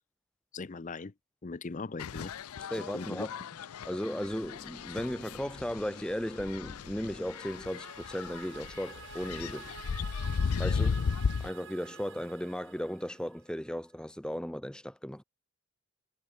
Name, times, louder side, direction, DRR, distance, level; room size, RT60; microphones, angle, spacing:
voice 1, 0.5-1.1 1.4-2.3 2.8-3.3, left 3 dB, 35° left, 0.5 m, -39 dB
sound 1, 2.0-11.5, left 5 dB, 90° left, 0.5 m, -35 dB
voice 2, 2.7-3.3 3.8-9.7 10.6-11.1 11.4-15.2, equal, 5° left, 1.1 m, -36 dB
sound 2, 6.5-13.7, right 7 dB, 60° right, 1.5 m, -50 dB
head